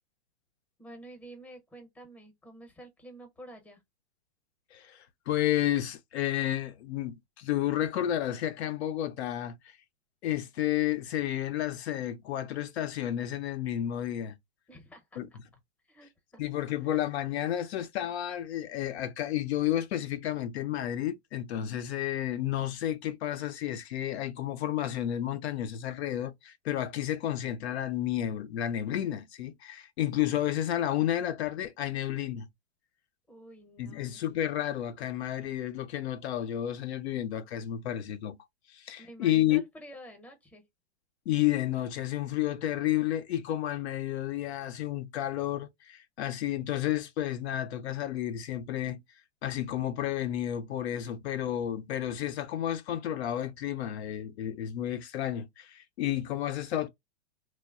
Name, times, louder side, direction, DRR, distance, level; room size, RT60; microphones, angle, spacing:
voice 1, 0.8-3.8 14.7-15.2 15.9-16.4 16.7-17.0 33.3-34.2 39.0-40.6, right 1 dB, 5° left, 0.7 m, -49 dB
voice 2, 4.7-9.6 10.2-14.4 15.2-15.3 16.4-32.5 33.8-38.4 38.7-39.6 41.3-49.0 49.4-56.9, left 12 dB, 75° left, 0.5 m, -31 dB
3.0 x 2.0 x 2.3 m
hypercardioid pair, 140°, 33 cm